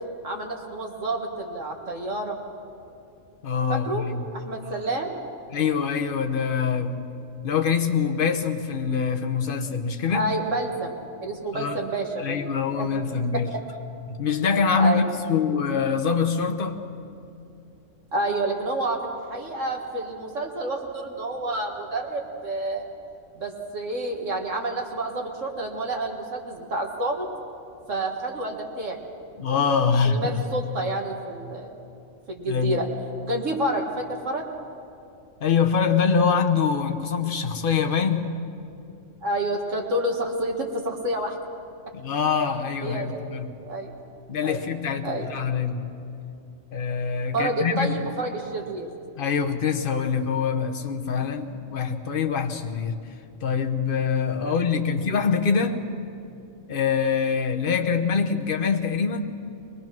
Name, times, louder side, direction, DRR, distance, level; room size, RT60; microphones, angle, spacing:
voice 1, 0.2-2.4 3.7-5.2 10.1-10.9 11.2-12.9 13.3-13.6 14.7-15.0 18.1-22.9 23.3-27.3 27.9-29.0 30.0-31.8 32.3-32.9 33.2-34.5 39.2-41.4 42.8-43.3 43.6-43.9 44.4-44.6 45.0-45.3 47.3-48.9 51.7-51.8 54.4-54.6, right 2 dB, 80° right, 1 dB, 2.3 m, -29 dB
voice 2, 3.4-4.2 5.5-7.0 7.4-10.2 11.5-11.8 12.2-13.5 14.1-16.8 29.4-30.4 32.5-32.8 35.4-38.3 41.9-43.5 44.3-45.8 46.7-48.0 49.2-53.0 53.4-55.8 56.7-59.3, left 6 dB, 45° left, 4 dB, 1.2 m, -24 dB
22.5 x 20.0 x 6.0 m, 2.7 s
omnidirectional pair, 1.3 m